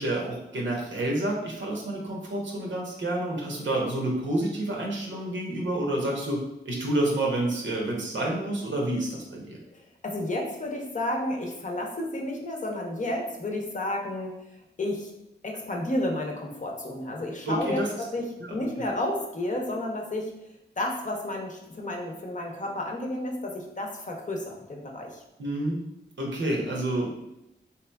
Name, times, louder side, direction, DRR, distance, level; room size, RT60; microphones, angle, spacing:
voice 1, 0.0-6.4 6.6-9.6 17.5-17.9 18.4-18.5 25.4-25.8 26.2-27.2, right 1 dB, 90° right, -1 dB, 0.8 m, -29 dB
voice 2, 9.7-14.3 14.8-15.1 15.4-18.2 18.5-20.3 20.8-25.2, left 1 dB, 40° left, 0 dB, 0.7 m, -31 dB
3.5 x 2.9 x 2.2 m, 0.88 s
wide cardioid pair, 70°, 19 cm